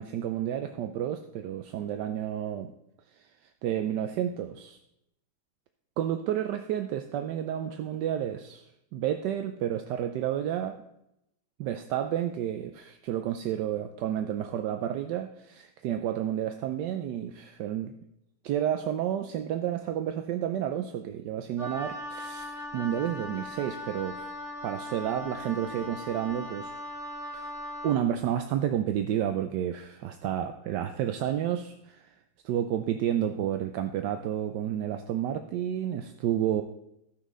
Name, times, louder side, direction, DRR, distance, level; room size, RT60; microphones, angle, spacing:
voice 1, 0.0-2.7 3.2-3.3 3.6-4.8 6.0-8.6 8.9-10.8 11.6-17.9 18.4-24.3 24.6-26.8 27.3-27.5 27.8-32.0 32.4-36.6, right 10 dB, 70° right, 7 dB, 1.1 m, -30 dB
Wind instrument woodwind instrument, 21.6-28.0, left 1 dB, 40° right, 2.0 m, -39 dB
15.5 x 5.8 x 3.7 m, 0.83 s
omnidirectional pair, 2.2 m